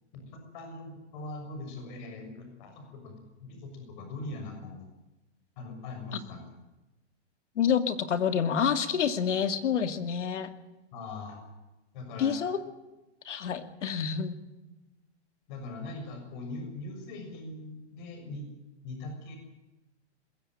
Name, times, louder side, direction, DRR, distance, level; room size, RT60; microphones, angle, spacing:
voice 1, 0.1-4.8 5.6-6.4 10.9-11.4 11.9-12.4 15.5-18.5 18.8-19.4, left 2 dB, 40° left, 4 dB, 6.8 m, -41 dB
voice 2, 7.6-10.5 12.2-12.6 13.3-14.3, left 7 dB, 90° left, 10 dB, 2.6 m, -28 dB
21.5 x 16.5 x 9.3 m, 1.0 s
hypercardioid pair, 160°, 35 cm